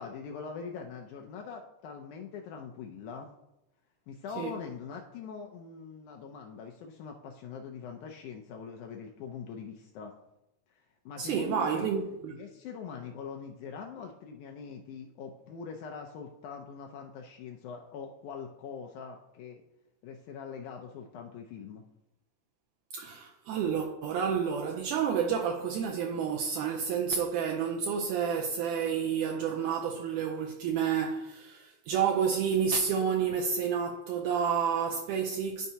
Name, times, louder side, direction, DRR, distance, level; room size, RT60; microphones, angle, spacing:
voice 1, 0.0-3.3 4.1-10.1 10.7-11.9 12.3-19.6 20.0-21.8, left 6 dB, 80° left, 1.9 m, -43 dB
voice 2, 11.2-12.3 22.9-35.7, right 7 dB, 80° right, 2.0 m, -30 dB
12.0 x 4.4 x 2.7 m
omnidirectional pair, 3.9 m